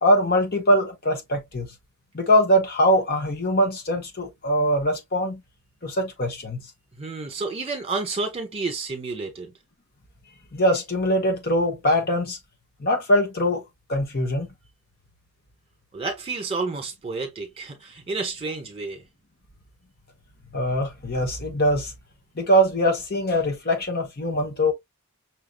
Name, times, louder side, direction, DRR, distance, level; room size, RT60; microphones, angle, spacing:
voice 1, 0.0-1.7 2.1-5.4 5.8-6.6 10.5-12.4 12.8-13.6 13.9-14.5 20.5-21.9 22.4-24.7, equal, 45° left, 1.1 m, -22 dB
voice 2, 7.0-9.5 15.9-19.0, right 3 dB, 25° right, 1.4 m, -30 dB
5.9 x 2.7 x 2.3 m
head